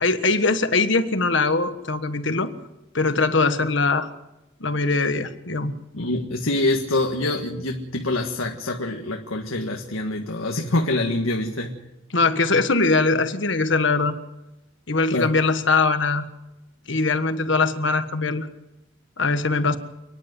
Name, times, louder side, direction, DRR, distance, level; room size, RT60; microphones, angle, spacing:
voice 1, 0.0-2.5 2.9-4.1 4.6-5.7 12.1-14.1 14.9-16.2 16.9-18.5 19.2-19.8, left 3 dB, 60° left, 10 dB, 1.5 m, -21 dB
voice 2, 5.9-11.8 15.1-15.3, left 2 dB, 90° left, 3 dB, 1.8 m, -25 dB
29.0 x 10.5 x 9.5 m, 0.97 s
head